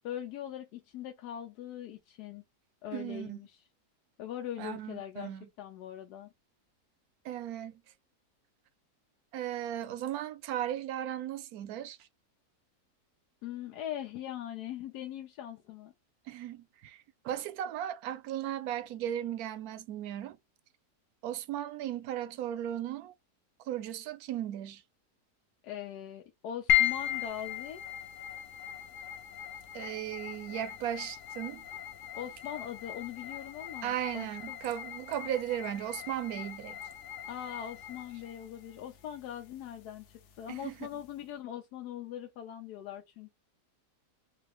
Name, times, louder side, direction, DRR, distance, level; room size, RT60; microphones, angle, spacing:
voice 1, 0.0-2.4 2.8-3.6 4.2-6.3 13.4-15.9 25.6-27.8 32.1-34.5 37.3-43.3, left 10 dB, 85° left, 1.2 m, -41 dB
voice 2, 2.9-3.4 4.6-5.5 7.2-7.8 9.3-12.1 16.3-20.4 21.2-23.1 23.7-24.8 29.7-31.6 33.8-36.8 40.5-40.7, right 11 dB, 75° right, 1.0 m, -36 dB
sound 1, 26.7-41.2, left 13 dB, 60° left, 0.8 m, -37 dB
3.9 x 2.4 x 3.0 m
omnidirectional pair, 1.7 m